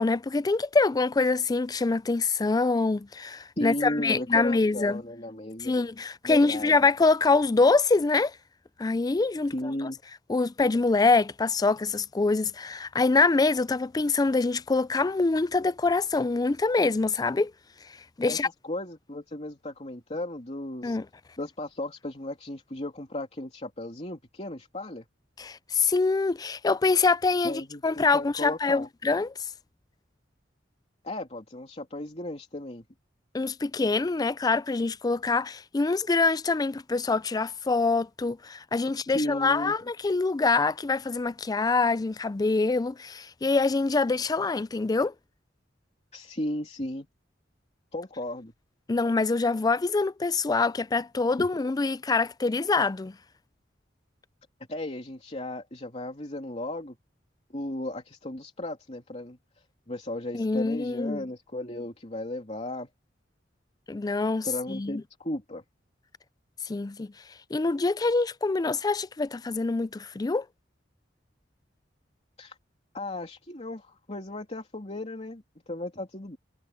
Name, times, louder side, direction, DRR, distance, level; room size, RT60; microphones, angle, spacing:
voice 1, 0.0-5.0 5.6-8.3 8.8-9.5 10.3-17.5 18.2-18.5 20.8-21.0 25.4-29.3 33.3-45.1 48.9-53.1 60.3-61.2 63.9-65.0 66.6-67.1 67.5-70.5, left 3 dB, 20° left, 0.4 m, -25 dB
voice 2, 3.6-5.8 6.2-6.8 9.5-10.0 18.3-18.4 18.6-21.0 21.4-25.1 27.4-28.9 31.0-32.8 39.1-39.8 46.1-47.1 47.9-48.5 51.4-51.5 54.7-57.0 57.5-59.4 59.9-62.9 64.4-65.6 72.4-72.6 72.9-76.4, left 1 dB, 35° left, 3.0 m, -35 dB
head